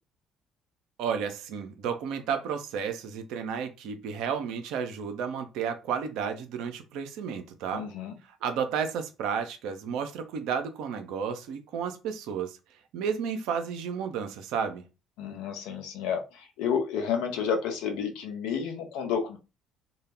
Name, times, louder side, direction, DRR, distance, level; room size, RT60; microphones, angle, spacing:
voice 1, 1.0-7.9 8.4-12.6 12.9-14.8, right 7 dB, 65° right, 0.4 m, -32 dB
voice 2, 7.7-8.1 15.2-16.2 16.6-19.4, left 7 dB, 65° left, 0.6 m, -30 dB
2.1 x 2.0 x 3.2 m
figure-of-eight pair, 50°, 0 cm